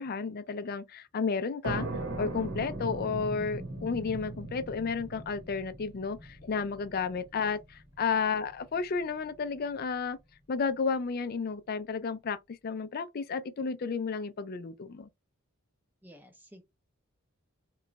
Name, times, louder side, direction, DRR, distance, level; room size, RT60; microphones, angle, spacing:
voice 1, 0.0-1.9 2.2-10.2 10.5-15.1, left 5 dB, 45° left, 0.4 m, -32 dB
sound 1, 1.6-9.0, right 2 dB, 55° right, 1.0 m, -39 dB
voice 2, 16.0-16.6, equal, 10° right, 0.6 m, -53 dB
3.0 x 2.3 x 3.8 m
head